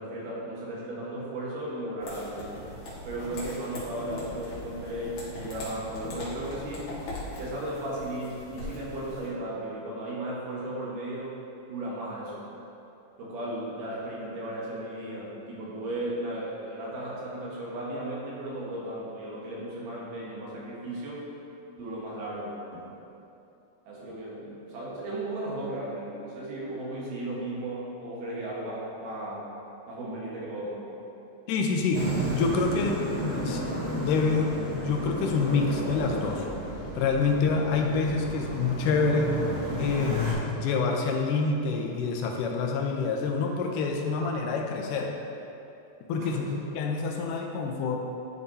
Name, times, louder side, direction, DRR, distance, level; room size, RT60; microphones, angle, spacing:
voice 1, 0.0-2.5 3.1-6.9 7.4-11.4 11.7-12.5 13.2-21.2 21.8-22.9 23.9-29.5 29.9-30.9 46.2-46.5, right 1 dB, 85° right, -6 dB, 3.0 m, -35 dB
sound 1, 2.0-9.3, left 1 dB, 70° left, 2.9 m, -40 dB
voice 2, 31.5-36.5 37.0-39.4 39.8-45.2 46.1-48.0, left 4 dB, 90° left, 2 dB, 2.3 m, -27 dB
sound 2, 31.9-40.3, right 1 dB, 40° right, 1.8 m, -32 dB
12.0 x 5.0 x 2.7 m, 2.8 s
omnidirectional pair, 3.6 m